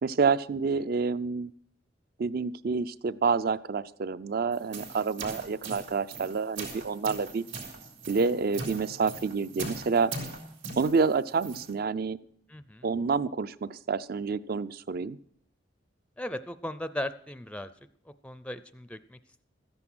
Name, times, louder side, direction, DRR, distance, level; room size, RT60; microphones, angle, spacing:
voice 1, 0.0-1.5 2.2-7.4 8.1-10.1 10.8-12.2 12.8-15.2, right 5 dB, 50° right, 16 dB, 0.4 m, -28 dB
sound 1, 4.5-11.7, right 3 dB, 80° right, 3.6 m, -40 dB
voice 2, 12.5-12.9 16.2-17.7 18.1-19.4, left 1 dB, 5° left, 13 dB, 0.4 m, -37 dB
13.5 x 9.8 x 6.1 m, 0.66 s
head